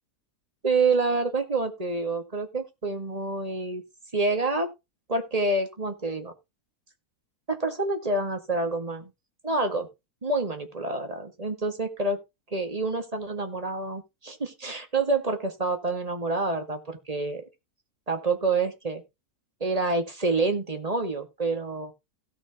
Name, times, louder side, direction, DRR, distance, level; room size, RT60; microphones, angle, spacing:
voice 1, 0.6-3.8 4.1-4.7 5.1-6.3 7.5-9.1 9.4-9.9 10.2-12.2 12.5-17.4 18.1-19.0 19.6-21.9, right 3 dB, 25° right, 1.9 m, -27 dB
17.0 x 5.9 x 3.6 m
omnidirectional pair, 1.6 m